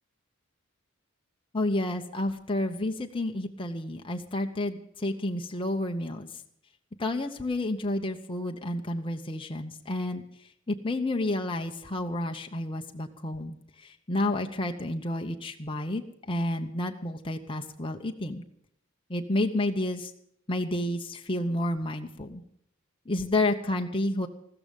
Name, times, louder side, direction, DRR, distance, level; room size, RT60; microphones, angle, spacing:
voice 1, 1.5-6.3 7.0-10.2 10.7-18.4 19.1-20.1 20.5-22.4 23.1-24.3, left 1 dB, 25° left, 4 dB, 1.0 m, -30 dB
14.5 x 14.0 x 5.4 m, 0.69 s
head